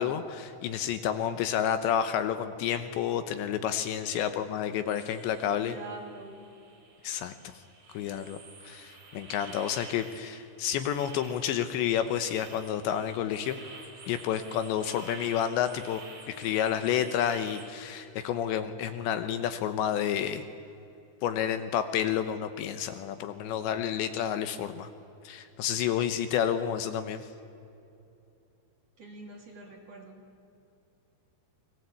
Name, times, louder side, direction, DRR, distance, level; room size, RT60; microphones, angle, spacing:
voice 1, 0.0-5.7 7.0-7.5 7.9-8.4 8.6-13.6 14.1-16.0 16.3-20.5 21.2-24.9 25.2-27.3, left 9 dB, 75° left, 10 dB, 3.1 m, -30 dB
voice 2, 4.1-4.5 5.6-6.4 29.0-30.2, right 3 dB, 40° right, 0 dB, 3.1 m, -45 dB
sound 1, 4.9-17.7, right 3 dB, 60° right, 6.8 m, -50 dB
30.0 x 22.5 x 8.4 m, 2.7 s
omnidirectional pair, 5.5 m